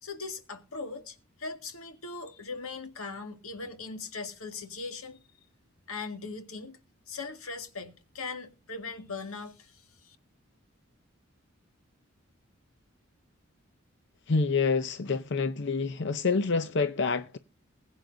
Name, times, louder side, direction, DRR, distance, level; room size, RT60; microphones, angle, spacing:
voice 1, 0.0-5.5 5.9-6.8 7.1-10.2, left 4 dB, 85° left, 1.9 m, -40 dB
voice 2, 14.3-17.4, left 4 dB, 55° left, 0.6 m, -27 dB
21.0 x 9.0 x 2.6 m
head